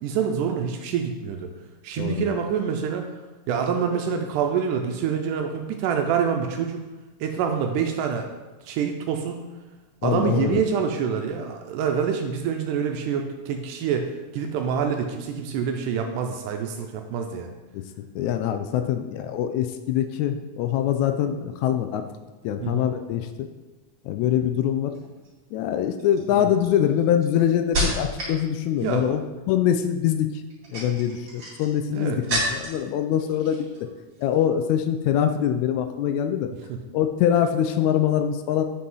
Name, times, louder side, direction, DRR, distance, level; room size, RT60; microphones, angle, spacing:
voice 1, 0.0-1.5 1.8-3.0 3.5-6.8 7.2-8.3 8.7-9.4 10.0-17.5 22.6-22.9 26.3-26.5 28.8-29.1 31.9-32.2 36.7-36.8, right 7 dB, 85° right, 4 dB, 2.1 m, -26 dB
voice 2, 2.0-2.4 10.0-10.6 17.7-17.8 18.2-22.1 22.4-23.5 24.1-24.9 25.5-29.2 29.5-30.3 30.7-33.6 34.2-36.5 36.9-38.6, left 10 dB, 80° left, 7 dB, 1.7 m, -23 dB
sound 1, 24.9-25.3 26.0-28.4 28.7-29.2 30.4-32.9 33.2-33.8 34.1-34.4, right 1 dB, 35° right, 3.0 m, -30 dB
8.6 x 5.6 x 3.8 m, 1.2 s
omnidirectional pair, 3.7 m